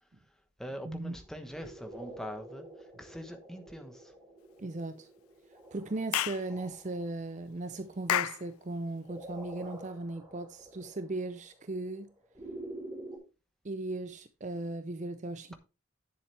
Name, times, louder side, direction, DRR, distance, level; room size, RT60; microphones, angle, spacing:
voice 1, 0.0-4.1, equal, ahead, 1.0 m, -44 dB
voice 2, 0.8-1.2 4.6-5.1 5.7-12.1 13.6-15.5, right 2 dB, 35° right, 0.5 m, -37 dB
sound 1, 1.2-13.2, right 1 dB, 20° right, 4.1 m, -48 dB
Clapping / Chirp tweet, 6.1-6.4 8.1-8.4, left 12 dB, 85° left, 0.4 m, -29 dB
10.0 x 7.2 x 3.3 m
head